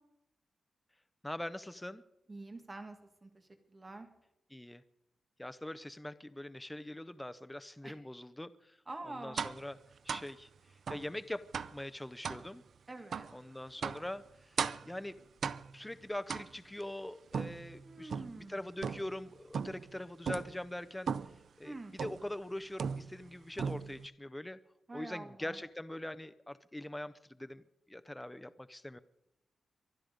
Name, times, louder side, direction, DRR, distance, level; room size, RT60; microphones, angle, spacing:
voice 1, 1.2-2.0 4.5-4.8 5.4-8.8 9.0-9.8 10.0-10.5 10.9-11.4 11.7-12.6 13.3-14.6 14.9-15.2 15.7-18.1 18.4-21.1 21.6-24.6 24.9-27.6 27.9-29.0, left 1 dB, 5° left, 11 dB, 0.5 m, -43 dB
voice 2, 2.3-4.1 7.8-7.9 8.9-9.4 12.9-13.3 17.8-18.7 21.6-22.0 24.9-25.6, right 2 dB, 20° right, 6 dB, 1.7 m, -46 dB
sound 1, 9.4-9.7 10.1-10.3 10.9-11.1 11.5-11.8 12.2-12.5 13.1-13.3 13.8-14.1 14.6-14.9 15.4-15.8 16.3-16.8 17.3-18.4 18.8-19.2 19.5-19.9 20.2-20.6 21.1-21.4 22.0-22.3 22.8-23.3 23.6-24.1, right 6 dB, 55° right, 0.5 m, -37 dB
23.5 x 10.5 x 5.1 m, 0.85 s
wide cardioid pair, 165°, 0 cm